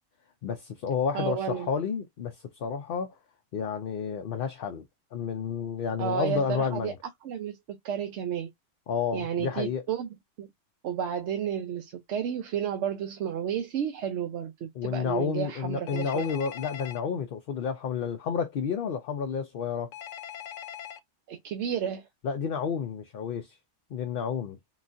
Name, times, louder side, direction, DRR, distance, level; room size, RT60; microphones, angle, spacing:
voice 1, 0.4-3.1 3.5-4.8 5.1-7.0 8.9-9.8 14.8-19.9 22.2-23.6 23.9-24.6, left 6 dB, 60° left, 0.7 m, -30 dB
voice 2, 1.1-1.7 6.0-6.9 7.2-8.5 9.1-10.1 10.4-10.5 10.8-16.3 21.3-22.1, right 8 dB, 70° right, 0.9 m, -32 dB
Telephone, 15.9-17.0 19.9-21.0, left 10 dB, 90° left, 0.9 m, -41 dB
3.9 x 2.3 x 2.5 m
omnidirectional pair, 1.3 m